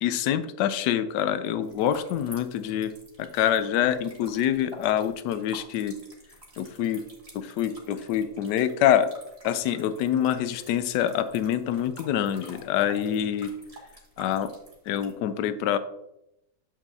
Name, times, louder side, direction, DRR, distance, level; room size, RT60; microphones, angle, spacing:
voice 1, 0.0-2.9 3.2-6.0 6.6-7.0 7.3-9.1 9.4-13.5 14.2-14.5 14.9-15.8, left 10 dB, 75° left, 12 dB, 1.1 m, -26 dB
sound 1, 1.6-15.1, right 1 dB, 20° right, 1.8 m, -50 dB
8.3 x 6.1 x 2.7 m, 0.83 s
omnidirectional pair, 2.0 m